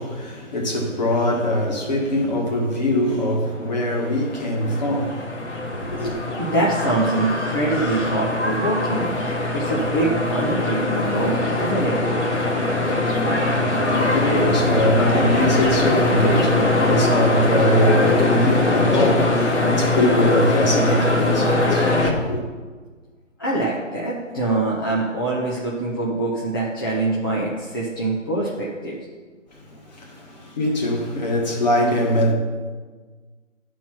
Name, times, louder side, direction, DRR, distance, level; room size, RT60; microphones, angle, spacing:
voice 1, 0.0-5.2 5.7-6.1 13.8-22.4 29.5-32.3, left 1 dB, 35° left, 1.7 m, -22 dB
sound 1, 3.8-22.1, left 2 dB, 60° left, 2.0 m, -21 dB
voice 2, 6.4-9.2 9.5-12.0 23.4-29.0, right 2 dB, 15° left, 0.8 m, -24 dB
11.5 x 4.6 x 5.8 m
figure-of-eight pair, 155°, 39 cm